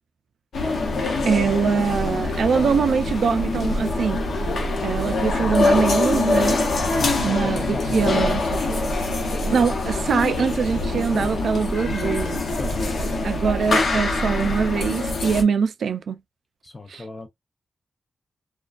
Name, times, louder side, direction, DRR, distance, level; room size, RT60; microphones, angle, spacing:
sound 1, 0.5-15.4, left 2 dB, 90° left, 0.7 m, -24 dB
voice 1, 1.3-4.5 4.8-6.7 7.2-8.4 9.3-12.4 13.2-16.2 16.9-17.0, right 6 dB, 90° right, 0.3 m, -23 dB
voice 2, 7.0-8.4 12.6-13.0 16.6-17.3, left 2 dB, 25° left, 0.6 m, -36 dB
2.3 x 2.2 x 2.4 m
wide cardioid pair, 155°, 0 cm